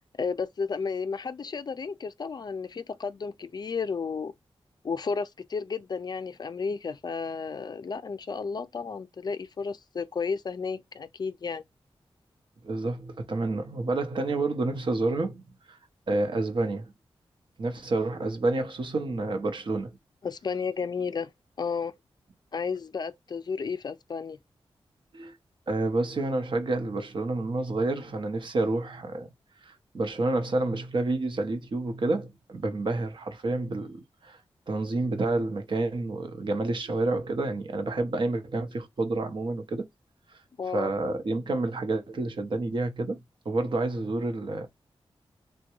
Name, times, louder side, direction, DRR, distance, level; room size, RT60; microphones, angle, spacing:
voice 1, 0.2-4.3 4.8-11.6 20.2-21.3 21.6-21.9 22.5-24.4 40.6-40.9, left 5 dB, 45° left, 0.4 m, -32 dB
voice 2, 12.6-15.4 15.7-15.8 16.1-16.9 17.6-20.0 25.1-25.3 25.7-29.3 29.6-34.4 34.7-39.9 40.7-43.2 43.4-44.7, right 2 dB, 55° right, 0.8 m, -29 dB
3.4 x 2.2 x 2.9 m
wide cardioid pair, 130°, 10 cm